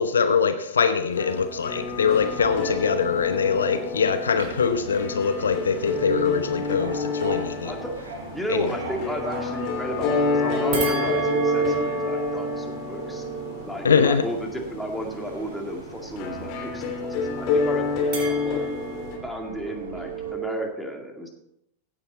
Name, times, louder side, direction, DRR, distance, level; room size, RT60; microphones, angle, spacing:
voice 1, 0.0-7.7 8.5-8.7 13.8-14.2, left 6 dB, 70° left, 9 dB, 0.8 m, -23 dB
sound 1, 1.2-19.2, left 4 dB, 40° left, 2.9 m, -29 dB
Subway metro underground, 1.6-20.3, right 2 dB, 65° right, 3.5 m, -40 dB
voice 2, 2.2-2.7 7.6-8.0 8.3-13.2 13.6-18.6 19.2-21.3, equal, ahead, 1 dB, 2.3 m, -33 dB
sound 2, 10.7-15.2 18.1-20.7, right 7 dB, 40° right, 4.2 m, -31 dB
16.0 x 8.7 x 4.1 m, 0.81 s
figure-of-eight pair, 90°, 0 cm